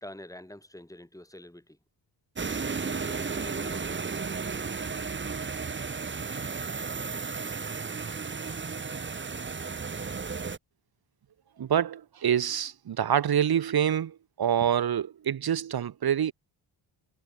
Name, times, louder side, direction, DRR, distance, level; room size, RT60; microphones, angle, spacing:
voice 1, 0.0-1.8 2.8-4.0, left 1 dB, 5° left, 3.1 m, -46 dB
sound 1, 2.4-10.6, right 5 dB, 25° right, 1.0 m, -34 dB
voice 2, 11.6-16.3, right 9 dB, 45° right, 1.0 m, -26 dB
cardioid pair, 70°, 50 cm